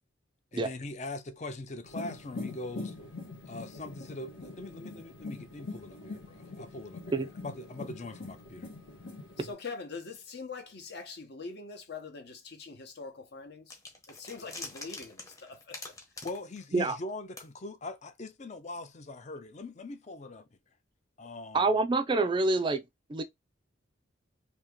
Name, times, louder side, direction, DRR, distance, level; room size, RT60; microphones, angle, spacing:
voice 1, 0.5-2.9 3.5-8.7 16.2-20.5 21.2-21.7, left 2 dB, 35° left, 0.5 m, -42 dB
sound 1, 1.8-9.5, left 3 dB, 80° left, 1.3 m, -43 dB
voice 2, 9.4-13.8 14.1-15.9, left 4 dB, 55° left, 0.9 m, -43 dB
sound 2, 13.7-17.1 17.4-17.5, left 2 dB, 15° left, 0.9 m, -45 dB
voice 3, 21.5-22.8 23.1-23.2, right 3 dB, 25° right, 0.3 m, -26 dB
2.9 x 2.8 x 3.5 m
head